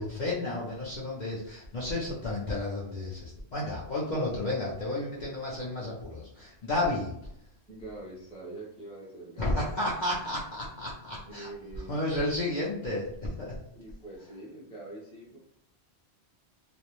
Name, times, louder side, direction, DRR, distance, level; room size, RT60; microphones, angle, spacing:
voice 1, 0.0-7.1 9.4-11.5 11.9-13.6, left 1 dB, 50° left, -5 dB, 0.6 m, -32 dB
voice 2, 7.7-9.7 11.2-12.1 13.7-15.4, right 2 dB, 5° left, -4 dB, 0.7 m, -44 dB
2.4 x 2.0 x 2.9 m, 0.74 s
omnidirectional pair, 1.1 m